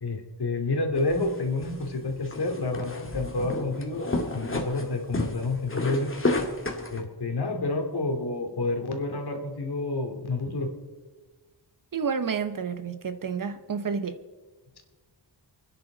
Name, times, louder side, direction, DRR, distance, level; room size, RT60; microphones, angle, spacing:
voice 1, 0.0-6.2 6.9-10.7, left 2 dB, 60° left, 2.5 m, -29 dB
sound 1, 1.0-7.0, left 2 dB, 30° left, 2.0 m, -32 dB
voice 2, 11.9-14.2, right 6 dB, 45° right, 0.9 m, -30 dB
28.5 x 10.0 x 3.9 m
wide cardioid pair, 95°, 44 cm